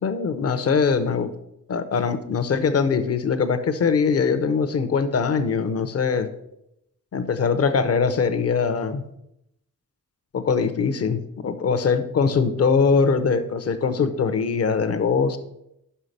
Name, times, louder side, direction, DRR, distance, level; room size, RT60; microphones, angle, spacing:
voice 1, 0.0-1.3 1.7-6.3 7.1-9.0 10.3-15.4, left 5 dB, 45° left, 10 dB, 0.8 m, -22 dB
5.6 x 5.6 x 6.6 m, 0.81 s
wide cardioid pair, 140°, 33 cm